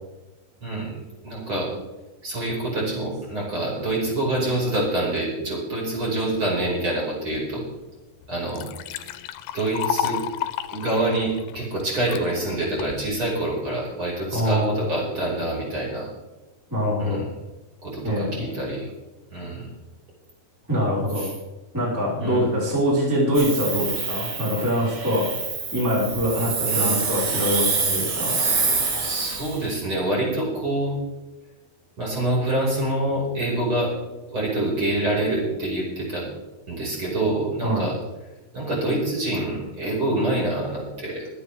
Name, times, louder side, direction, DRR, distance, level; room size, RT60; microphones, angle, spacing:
voice 1, 0.6-1.0 1.2-1.7 2.2-7.6 8.3-8.7 9.0-9.2 9.5-10.2 10.7-16.1 17.0-17.3 17.8-18.9 19.3-19.7 21.2-21.3 22.2-22.4 26.3-27.0 29.0-30.9 32.0-33.9 34.3-36.3 36.7-38.0 38.5-41.3, right 1 dB, 30° right, -4 dB, 5.9 m, -26 dB
Liquid, 7.7-7.8 8.2-12.2 12.8-13.3, left 11 dB, 80° left, 2.7 m, -31 dB
voice 2, 14.3-14.9 16.7-17.3 18.0-18.6 20.7-21.3 21.7-25.3 25.7-28.3 37.6-37.9, equal, 5° right, -6 dB, 4.1 m, -24 dB
Hiss, 23.3-29.6, right 4 dB, 65° right, 5.1 m, -26 dB
24.5 x 9.7 x 3.5 m, 1.1 s
omnidirectional pair, 4.7 m